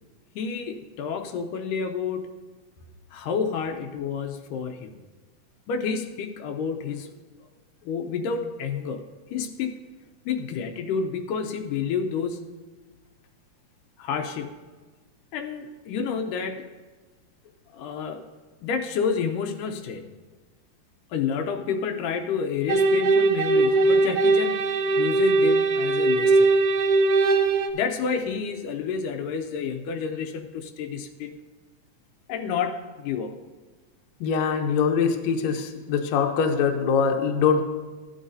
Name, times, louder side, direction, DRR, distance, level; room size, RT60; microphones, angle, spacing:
voice 1, 0.4-2.3 3.1-5.0 5.7-7.1 7.9-9.1 9.3-9.8 10.3-12.5 14.0-14.6 15.3-16.6 17.7-18.2 18.6-20.1 21.1-24.6 25.0-26.5 27.7-31.4 32.3-33.4, left 6 dB, 85° left, 5 dB, 2.2 m, -29 dB
sound 1, 22.7-27.7, right 3 dB, 75° right, 2.0 m, -20 dB
voice 2, 34.2-37.6, left 6 dB, 70° left, 4 dB, 1.8 m, -23 dB
14.5 x 10.0 x 2.7 m, 1.3 s
omnidirectional pair, 3.8 m